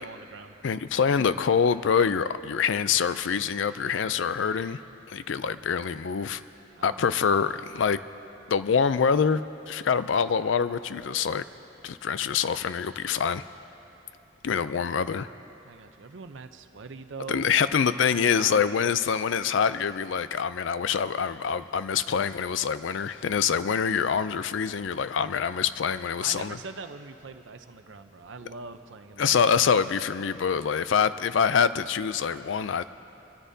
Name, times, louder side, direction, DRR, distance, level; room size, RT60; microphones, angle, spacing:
voice 1, 0.0-0.6 6.7-7.0 15.6-17.7 18.0-18.6 26.2-29.4, right 4 dB, 65° right, 8 dB, 0.7 m, -43 dB
voice 2, 0.6-4.8 5.1-6.4 6.8-8.0 8.5-11.4 11.8-13.4 14.4-15.3 17.3-26.6 29.2-32.8, left 6 dB, 65° left, 14 dB, 0.4 m, -25 dB
25.5 x 13.5 x 2.7 m, 3.0 s
head